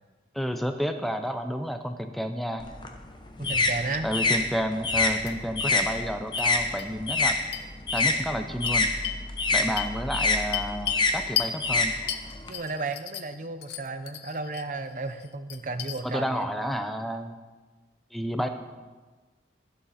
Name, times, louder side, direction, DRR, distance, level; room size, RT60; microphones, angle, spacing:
voice 1, 0.3-2.7 4.0-7.4 7.9-8.9 9.5-12.0 16.0-17.4 18.1-18.5, equal, ahead, 7 dB, 0.6 m, -30 dB
sound 1, 2.6-7.4 7.7-12.5, left 3 dB, 25° left, 0.9 m, -26 dB
sound 2, 3.4-3.6 3.9-4.0 5.2-5.3 6.4-6.5 6.8-6.9 7.5-7.6 8.0-8.1 8.7-9.2 9.8-11.1 11.4-11.5 12.1-13.4 13.6-14.7 15.1-16.0, left 10 dB, 65° left, 0.7 m, -34 dB
voice 2, 3.4-4.1 12.5-16.5, right 3 dB, 45° right, 9 dB, 0.7 m, -33 dB
13.0 x 11.5 x 4.2 m, 1.3 s
head